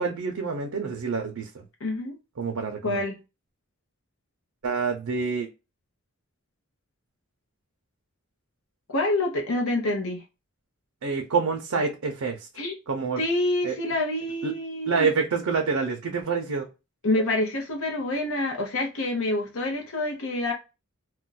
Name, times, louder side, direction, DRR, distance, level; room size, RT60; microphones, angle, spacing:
voice 1, 0.0-1.6 2.4-3.0 4.6-5.5 11.0-12.5 12.9-13.2 13.6-13.7 14.4-14.5 14.9-16.7, right 5 dB, 90° right, 0.5 m, -27 dB
voice 2, 1.8-2.1 2.8-3.2 8.9-10.2 12.6-12.7 13.2-15.1 17.0-20.5, left 2 dB, 70° left, 0.7 m, -27 dB
2.4 x 2.2 x 3.8 m
head